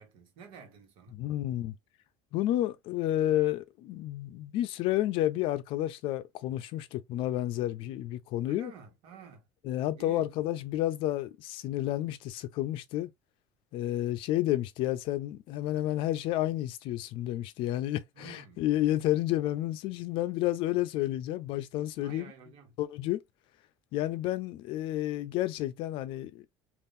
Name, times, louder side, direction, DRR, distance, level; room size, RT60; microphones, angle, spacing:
voice 1, 0.0-1.2 8.4-9.4 10.0-10.3 18.2-18.6 22.0-22.7, right 6 dB, 65° right, 1.3 m, -50 dB
voice 2, 1.1-1.8 2.3-8.7 9.6-13.1 13.7-22.3 22.8-23.2 23.9-26.5, left 14 dB, 60° left, 0.5 m, -30 dB
3.6 x 2.5 x 2.5 m
cardioid pair, 160°, 10 cm